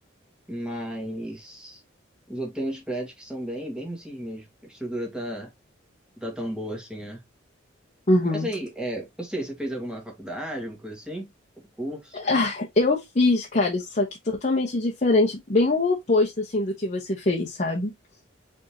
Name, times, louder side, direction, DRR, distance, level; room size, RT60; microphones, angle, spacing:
voice 1, 0.5-1.8 2.3-5.5 6.2-7.2 8.2-11.3 11.8-12.2, right 1 dB, 5° right, 1.8 m, -33 dB
voice 2, 8.1-8.5 12.1-17.9, left 2 dB, 40° left, 1.0 m, -23 dB
5.1 x 3.6 x 2.9 m
head